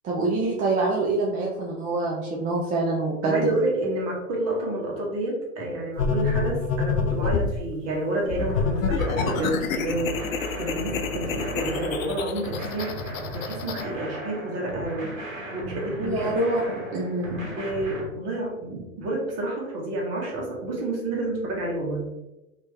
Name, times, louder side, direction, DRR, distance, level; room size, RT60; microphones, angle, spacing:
voice 1, 0.0-3.5 16.0-17.4, right 2 dB, 20° right, -3 dB, 0.5 m, -25 dB
voice 2, 3.2-10.1 10.6-13.0 13.3-16.2 17.5-22.1, right 1 dB, 35° right, -2 dB, 1.3 m, -29 dB
sound 1, 6.0-7.6 8.3-13.8, left 5 dB, 70° left, 0.6 m, -27 dB
sound 2, 8.4-18.0, right 1 dB, 70° right, 1.3 m, -37 dB
3.1 x 2.9 x 3.2 m, 0.99 s
hypercardioid pair, 100°, 41 cm